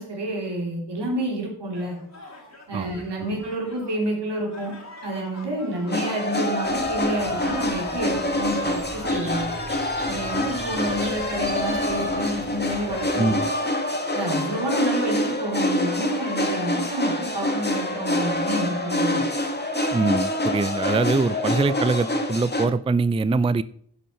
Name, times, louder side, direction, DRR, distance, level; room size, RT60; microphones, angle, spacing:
voice 1, 0.0-2.0 2.7-4.7 5.0-9.5 10.1-13.3 14.1-19.2, right 1 dB, 80° right, -1 dB, 3.5 m, -29 dB
sound 1, 1.7-6.3 6.6-9.7, left 2 dB, 40° left, 3.0 m, -42 dB
sound 2, 5.9-22.7, left 1 dB, 25° left, 1.7 m, -26 dB
sound 3, 6.6-13.0, right 2 dB, 30° right, 2.5 m, -41 dB
voice 2, 13.2-13.5 19.9-23.6, right 3 dB, 15° right, 16 dB, 0.4 m, -23 dB
11.0 x 5.4 x 5.7 m, 0.63 s
cardioid pair, 40°, 41 cm